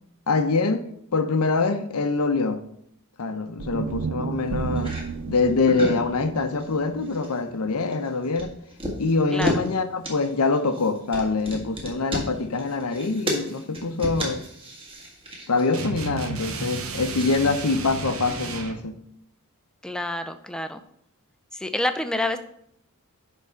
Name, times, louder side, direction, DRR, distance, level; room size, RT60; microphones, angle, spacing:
voice 1, 0.3-2.7 3.2-5.0 5.3-8.5 9.0-14.4 15.5-19.0, left 3 dB, 85° left, 0.8 m, -24 dB
sound 1, 3.6-7.8, right 5 dB, 90° right, 0.5 m, -33 dB
sound 2, 4.7-5.0 5.5-6.1 6.3-6.7 7.0-7.4 7.7-9.7 10.0-16.0 16.7-17.5, equal, 25° right, 1.9 m, -33 dB
sound 3, 15.7-18.8, right 4 dB, 70° right, 1.0 m, -33 dB
voice 2, 19.8-20.8 21.5-22.4, left 1 dB, 5° left, 0.5 m, -27 dB
10.5 x 3.7 x 5.7 m
head